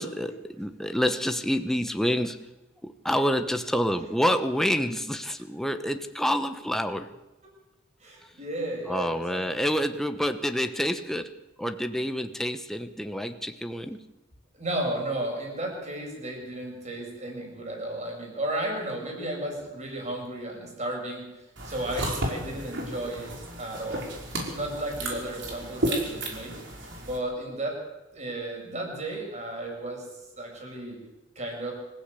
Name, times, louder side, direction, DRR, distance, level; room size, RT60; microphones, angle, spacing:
voice 1, 0.0-2.5 2.8-7.1 8.9-11.3 11.6-14.1, equal, ahead, 7 dB, 1.0 m, -28 dB
voice 2, 8.0-9.4 14.5-21.3 21.6-24.1 24.5-26.6 27.0-27.8 28.1-30.1 30.4-31.0 31.4-31.7, right 1 dB, 35° right, 1 dB, 7.2 m, -33 dB
sound 1, 21.6-27.2, right 1 dB, 60° right, 5.2 m, -33 dB
25.5 x 15.5 x 8.4 m, 1.1 s
head